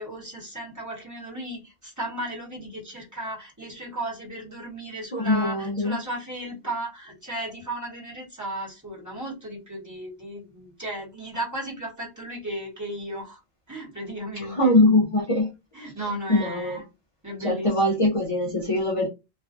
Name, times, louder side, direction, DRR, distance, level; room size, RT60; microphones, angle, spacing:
voice 1, 0.0-13.4 13.7-14.7 15.7-16.8 17.2-17.7, right 1 dB, 20° right, 1.1 m, -35 dB
voice 2, 5.1-5.9 14.6-15.5 16.3-16.8 17.4-19.1, left 1 dB, 40° left, 0.5 m, -22 dB
2.4 x 2.2 x 2.4 m
omnidirectional pair, 1.1 m